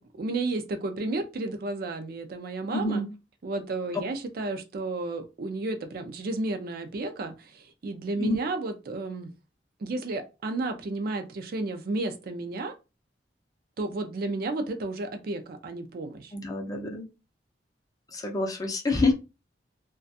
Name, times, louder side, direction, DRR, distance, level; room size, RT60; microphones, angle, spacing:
voice 1, 0.0-3.0 3.4-9.3 9.8-12.7 13.8-16.3, right 2 dB, 55° right, 0.4 m, -32 dB
voice 2, 2.7-3.1 8.2-8.4 16.3-17.1 18.1-19.1, left 2 dB, 20° left, 0.5 m, -27 dB
2.4 x 2.2 x 2.6 m
head